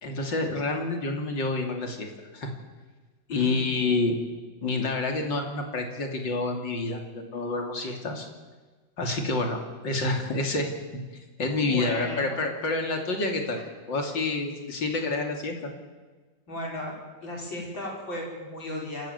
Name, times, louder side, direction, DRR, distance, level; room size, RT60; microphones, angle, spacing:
voice 1, 0.0-2.5 3.3-4.1 4.6-8.3 9.0-9.6 9.8-10.7 11.4-13.6 13.9-15.7, left 3 dB, 75° left, 3 dB, 3.5 m, -28 dB
voice 2, 3.3-3.8 11.6-12.4 13.6-13.7 16.5-16.9 17.2-19.1, left 1 dB, 90° left, -2 dB, 6.4 m, -35 dB
27.0 x 15.5 x 8.0 m, 1.3 s
omnidirectional pair, 2.0 m